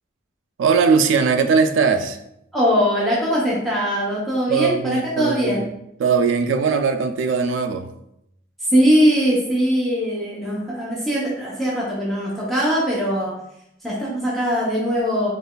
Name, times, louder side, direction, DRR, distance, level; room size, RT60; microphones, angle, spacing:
voice 1, 0.6-2.2 4.5-5.7 6.0-7.9, right 5 dB, 80° right, 7 dB, 0.3 m, -19 dB
voice 2, 2.5-5.7 8.7-13.3 13.8-15.3, equal, ahead, -8 dB, 0.6 m, -21 dB
3.9 x 3.2 x 2.2 m, 0.79 s
head